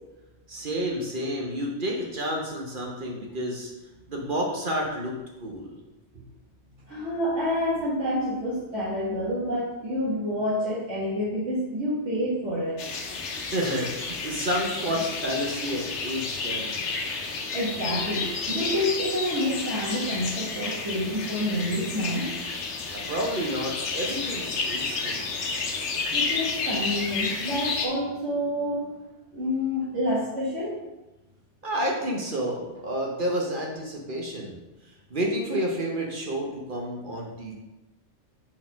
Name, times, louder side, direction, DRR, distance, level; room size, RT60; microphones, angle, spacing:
voice 1, 0.5-3.7 4.1-5.1 5.4-5.8 13.5-16.8 22.9-25.2 31.6-34.6 35.1-37.5, equal, 50° right, -1 dB, 1.0 m, -30 dB
voice 2, 6.9-12.8 17.5-22.3 26.1-28.9 29.3-30.8, left 1 dB, 65° right, -10 dB, 1.9 m, -28 dB
sound 1, 12.8-27.9, left 4 dB, 70° left, 1.1 m, -31 dB
4.4 x 4.2 x 5.6 m, 1.0 s
omnidirectional pair, 1.2 m